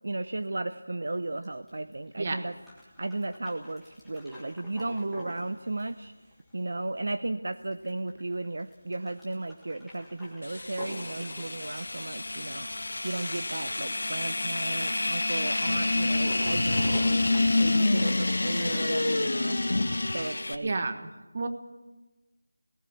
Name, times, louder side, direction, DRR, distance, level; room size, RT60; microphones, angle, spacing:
voice 1, 0.0-2.5 3.0-6.1 6.5-12.7 13.0-17.3 17.6-19.6 20.1-20.7, right 2 dB, 55° right, 11 dB, 0.7 m, -35 dB
sound 1, 1.4-19.8, left 1 dB, ahead, 1.7 m, -47 dB
sound 2, 10.4-20.5, left 2 dB, 65° left, 1.9 m, -28 dB
voice 2, 20.6-21.1 21.3-21.5, right 3 dB, 30° right, 8 dB, 1.4 m, -30 dB
18.5 x 17.0 x 8.3 m, 1.1 s
figure-of-eight pair, 175°, 0 cm